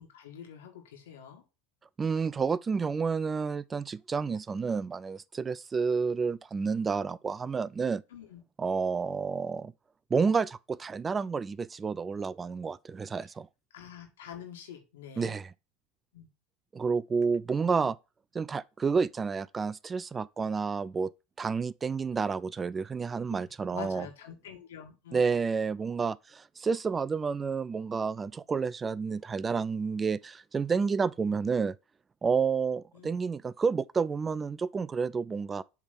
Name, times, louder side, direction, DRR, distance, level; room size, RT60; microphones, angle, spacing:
voice 1, 0.0-1.4 8.1-8.4 13.7-15.4 16.1-16.3 23.3-23.4 23.7-25.4 32.9-33.1, left 9 dB, 85° left, 1.8 m, -46 dB
voice 2, 2.0-8.0 8.6-9.7 10.1-13.5 15.2-15.5 16.7-18.0 18.3-21.1 21.4-24.1 25.1-31.8 32.2-35.6, right 5 dB, 25° right, 0.3 m, -30 dB
7.3 x 3.5 x 5.4 m
hypercardioid pair, 95°, 0 cm